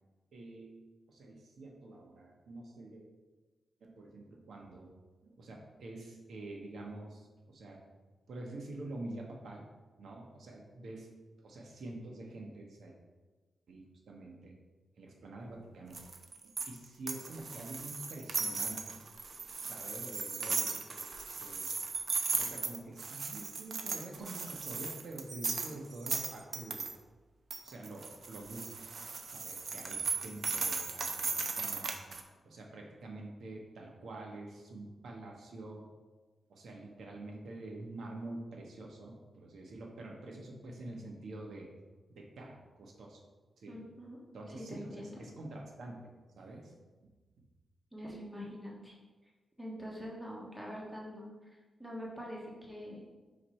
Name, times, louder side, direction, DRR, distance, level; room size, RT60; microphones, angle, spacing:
voice 1, 0.3-0.8 1.1-3.0 3.8-4.9 5.2-7.8 8.3-9.7 10.0-11.1 11.4-12.9 13.7-14.6 15.0-16.0 16.7-19.0 19.6-21.7 22.4-26.9 27.6-28.9 29.3-31.9 32.4-35.9 36.5-41.7 42.1-43.2 43.6-43.8 44.3-45.9 46.4-46.7 47.0-47.1, right 2 dB, 80° right, 0 dB, 1.1 m, -47 dB
sound 1, 15.9-26.9 27.5-32.2, right 4 dB, 55° right, 0.6 m, -37 dB
voice 2, 43.7-44.2 44.7-45.2 47.9-48.9 49.6-51.3 51.8-53.0, equal, 5° right, -4 dB, 1.4 m, -44 dB
4.7 x 4.4 x 4.6 m, 1.3 s
cardioid pair, 85°, 0 cm